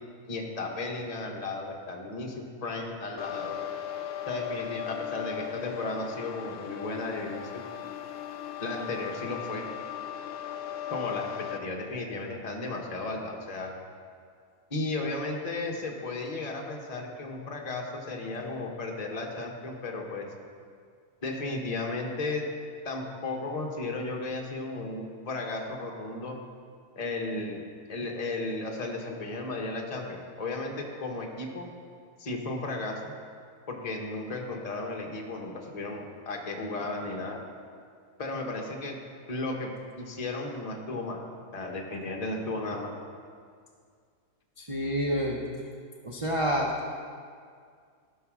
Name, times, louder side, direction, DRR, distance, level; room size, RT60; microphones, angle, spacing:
voice 1, 0.3-3.6 4.3-7.6 8.6-9.7 10.9-13.7 14.7-20.3 21.2-22.4 22.8-26.4 27.0-27.6 27.9-31.7 32.2-33.1 33.7-37.4 38.2-39.0 39.3-39.7 40.0-41.2 41.5-42.9, left 2 dB, 30° left, 0 dB, 1.1 m, -34 dB
sound 1, 3.2-11.6, left 10 dB, 60° left, 0.7 m, -37 dB
voice 2, 44.6-45.4 46.0-46.7, equal, 30° right, -2 dB, 0.7 m, -28 dB
13.5 x 5.7 x 6.1 m, 2.1 s
omnidirectional pair, 1.6 m